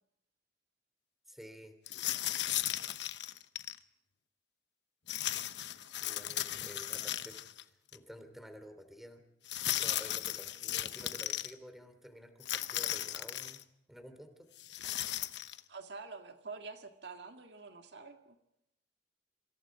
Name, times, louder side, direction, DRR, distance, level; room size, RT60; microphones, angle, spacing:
voice 1, 1.3-1.7 6.0-7.4 7.9-9.2 9.7-13.6 13.9-14.5, equal, ahead, 8 dB, 3.1 m, -51 dB
sound 1, 1.9-3.8 5.1-7.6 7.9-8.0 9.5-11.5 12.4-13.6 14.6-15.6, left 12 dB, 70° left, 1.0 m, -36 dB
voice 2, 15.7-18.4, right 4 dB, 70° right, 6 dB, 1.9 m, -47 dB
27.0 x 26.5 x 4.9 m, 0.84 s
head